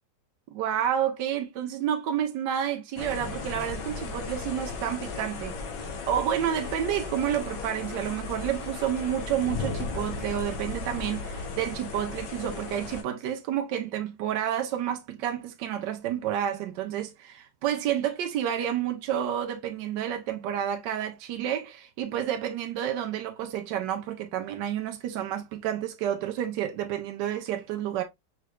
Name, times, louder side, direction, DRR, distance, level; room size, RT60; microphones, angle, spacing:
voice 1, 0.5-5.6 6.1-28.0, right 10 dB, 80° right, 1.3 m, -30 dB
sound 1, 3.0-13.0, left 4 dB, 80° left, 1.6 m, -36 dB
5.9 x 3.1 x 2.3 m
omnidirectional pair, 1.9 m